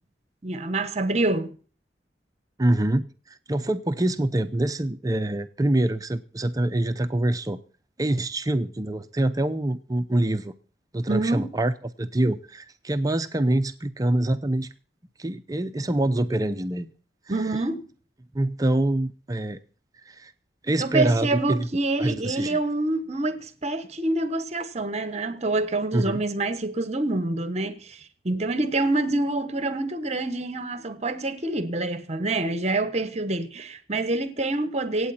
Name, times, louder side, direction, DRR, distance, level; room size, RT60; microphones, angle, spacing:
voice 1, 0.4-1.5 11.1-11.5 17.3-17.9 20.8-35.1, right 2 dB, 40° right, 1.2 m, -26 dB
voice 2, 2.6-7.6 8.0-10.5 10.9-11.7 12.0-14.7 15.2-16.9 17.4-17.5 18.3-19.6 20.0-20.3 20.6-21.7 22.0-22.6 25.9-26.2, right 1 dB, 20° right, 0.6 m, -25 dB
25.0 x 8.6 x 4.3 m
head